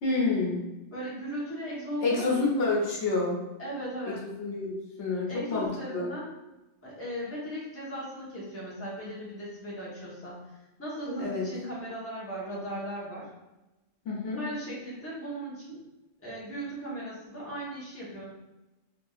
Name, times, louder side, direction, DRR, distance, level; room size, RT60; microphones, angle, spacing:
voice 1, 0.0-0.6 2.0-3.4 4.1-6.1 11.2-11.4 14.0-14.4, left 3 dB, 90° left, -4 dB, 1.2 m, -28 dB
voice 2, 0.9-2.3 3.6-4.2 5.3-6.3 6.8-10.4 10.8-13.3 14.3-15.8 16.2-18.2, right 1 dB, 15° left, -6 dB, 0.8 m, -37 dB
3.2 x 2.7 x 2.3 m, 1.0 s
omnidirectional pair, 1.2 m